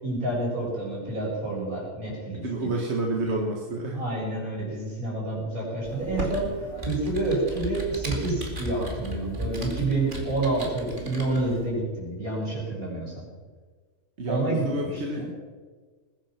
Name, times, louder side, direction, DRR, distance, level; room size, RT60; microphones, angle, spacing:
voice 1, 0.0-2.9 3.9-6.5 6.8-13.2 14.3-15.3, right 2 dB, 75° right, -4 dB, 6.9 m, -29 dB
voice 2, 2.3-4.0 14.2-15.3, right 2 dB, 50° right, 0 dB, 1.8 m, -29 dB
Computer keyboard, 5.8-11.6, right 1 dB, 35° right, 2.7 m, -35 dB
20.5 x 10.0 x 5.9 m, 1.5 s
omnidirectional pair, 1.5 m